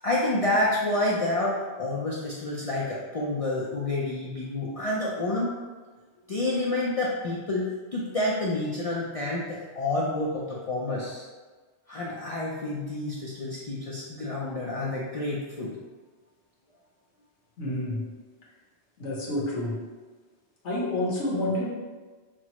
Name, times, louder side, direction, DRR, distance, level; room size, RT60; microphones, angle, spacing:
voice 1, 0.0-5.5 6.3-11.3 11.9-15.8, left 2 dB, 55° left, -4 dB, 0.4 m, -29 dB
voice 2, 17.6-18.0 19.0-19.8 20.6-21.7, left 1 dB, 85° left, -4 dB, 1.3 m, -28 dB
6.0 x 2.0 x 2.9 m, 1.4 s
omnidirectional pair, 1.2 m